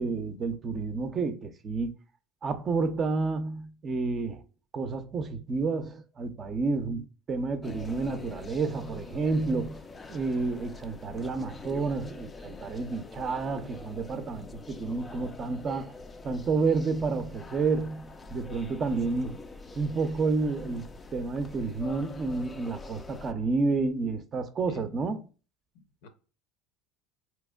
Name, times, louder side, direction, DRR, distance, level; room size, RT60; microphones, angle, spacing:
voice 1, 0.0-1.9 2.4-4.4 4.7-9.8 10.1-15.9 16.2-19.4 19.8-25.2, right 4 dB, 35° right, 0.5 m, -30 dB
sound 1, 7.6-23.3, left 3 dB, 20° left, 0.4 m, -45 dB
voice 2, 25.7-26.1, left 5 dB, 75° left, 0.7 m, -52 dB
4.2 x 2.9 x 2.3 m
supercardioid pair, 110°, 0 cm